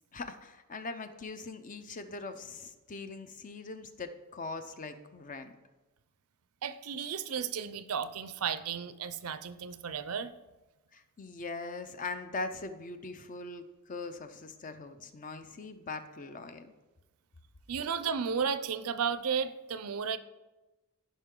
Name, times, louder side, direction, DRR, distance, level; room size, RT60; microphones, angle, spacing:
voice 1, 0.1-5.5 10.9-16.7, left 3 dB, 35° left, 9 dB, 0.6 m, -41 dB
voice 2, 6.6-10.3 17.7-20.2, right 6 dB, 75° right, 13 dB, 0.5 m, -33 dB
14.5 x 5.5 x 3.8 m, 1.1 s
head